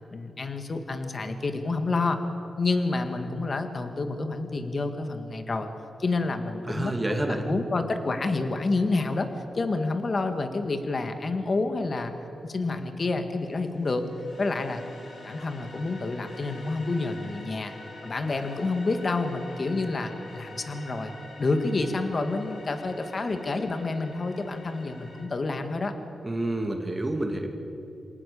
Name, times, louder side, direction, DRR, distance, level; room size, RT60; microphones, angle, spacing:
voice 1, 0.1-2.2 2.6-5.7 6.0-6.9 7.3-9.3 9.5-12.1 12.4-14.0 14.4-14.8 15.2-17.7 18.0-21.1 21.4-25.9, left 3 dB, 45° left, 7 dB, 2.1 m, -28 dB
voice 2, 6.7-7.5 26.2-27.5, right 1 dB, 20° right, 3 dB, 2.5 m, -28 dB
sound 1, 13.4-25.2, left 2 dB, 80° left, 6.1 m, -46 dB
26.5 x 18.5 x 7.0 m, 3.0 s
cardioid pair, 80°, 0 cm